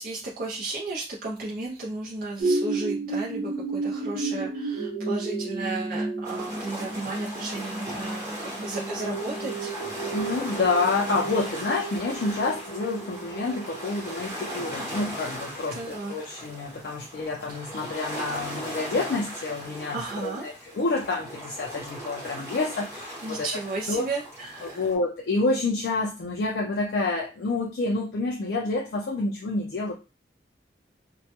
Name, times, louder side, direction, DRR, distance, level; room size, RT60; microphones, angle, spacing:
voice 1, 0.0-9.7 15.7-16.4 17.6-18.0 19.9-20.5 23.2-24.8, right 3 dB, 50° right, -4 dB, 0.4 m, -34 dB
sound 1, 2.4-15.9 16.5-16.6, right 3 dB, 85° right, 1.0 m, -33 dB
sound 2, 6.2-24.9, equal, 15° right, 0.9 m, -38 dB
voice 2, 10.1-23.5 23.9-24.1 24.6-29.9, left 3 dB, 65° left, 0 dB, 0.4 m, -28 dB
2.1 x 2.0 x 2.8 m, 0.30 s
head